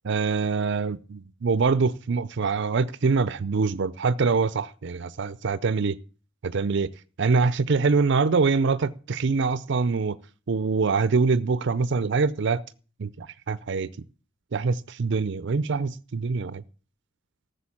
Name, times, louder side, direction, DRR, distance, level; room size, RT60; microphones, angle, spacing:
voice 1, 0.1-6.0 6.4-6.9 7.2-10.2 10.5-12.6 13.0-13.9 14.5-16.6, right 4 dB, 60° right, 0.5 m, -24 dB
14.0 x 6.7 x 8.5 m
head